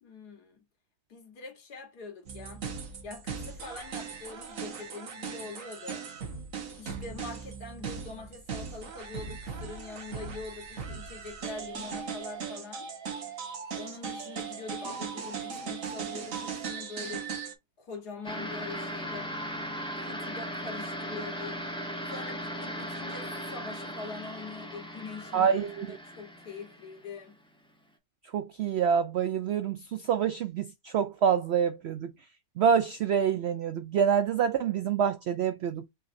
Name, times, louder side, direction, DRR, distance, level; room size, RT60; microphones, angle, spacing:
voice 1, 0.0-0.6 1.1-2.6 3.0-6.0 6.8-12.9 13.7-17.4 17.8-19.4 20.0-21.6 22.1-27.4, left 4 dB, 85° left, 2.0 m, -43 dB
sound 1, 2.2-17.5, right 6 dB, 60° right, 1.5 m, -38 dB
sound 2, 18.2-27.3, equal, 5° left, 1.0 m, -38 dB
voice 2, 25.3-26.0 28.3-32.1 32.6-35.8, right 7 dB, 90° right, 0.5 m, -26 dB
5.7 x 3.0 x 2.6 m
omnidirectional pair, 1.7 m